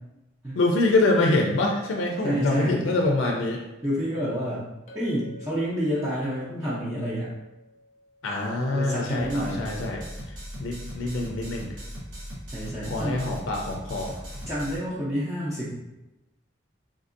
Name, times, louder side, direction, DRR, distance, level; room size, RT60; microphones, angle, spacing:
voice 1, 0.6-3.6 8.2-11.8 12.9-14.2, left 2 dB, 90° left, 0 dB, 0.4 m, -25 dB
voice 2, 2.2-2.8 3.8-4.7 4.9-7.3 8.7-9.7 12.5-13.2 14.5-15.7, equal, 15° right, -10 dB, 0.5 m, -29 dB
Chink clink, 4.9-9.3, left 1 dB, 35° left, 0.6 m, -50 dB
sound 1, 9.1-14.8, equal, 80° right, 1.0 m, -39 dB
3.6 x 2.5 x 2.5 m, 0.99 s
head